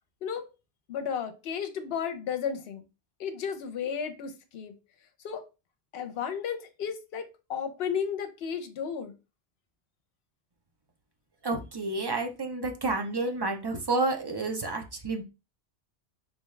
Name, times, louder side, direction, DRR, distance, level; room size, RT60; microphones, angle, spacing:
voice 1, 0.9-2.8 3.2-4.7 5.2-5.4 5.9-9.1, left 7 dB, 70° left, 8 dB, 0.8 m, -33 dB
voice 2, 11.4-15.2, right 3 dB, 40° right, 3 dB, 0.3 m, -30 dB
3.9 x 2.3 x 3.1 m, 0.29 s
omnidirectional pair, 1.1 m